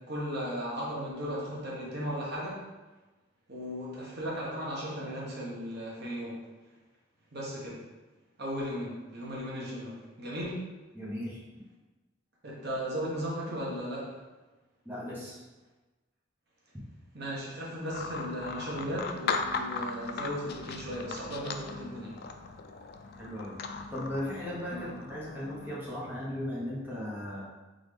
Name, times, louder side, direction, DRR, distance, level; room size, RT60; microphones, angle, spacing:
voice 1, 0.0-2.6 3.5-6.4 7.3-7.8 8.4-10.6 12.4-14.2 17.1-22.1 24.7-24.8, equal, 55° right, -5 dB, 1.2 m, -36 dB
voice 2, 10.9-11.4 14.8-15.4 23.2-27.4, left 1 dB, 10° right, -8 dB, 1.1 m, -37 dB
sound 1, 17.9-25.8, left 4 dB, 55° left, 0.3 m, -38 dB
4.0 x 3.8 x 3.4 m, 1.2 s
head